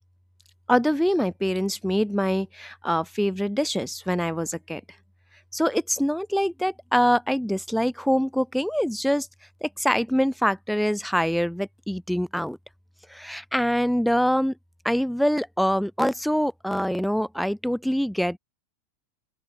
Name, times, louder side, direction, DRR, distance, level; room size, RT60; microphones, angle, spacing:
voice 1, 0.7-4.8 5.5-9.3 9.6-12.6 13.1-14.5 14.8-18.4, equal, ahead, 1.7 m, -24 dB
open air
figure-of-eight pair, 90°, 0 cm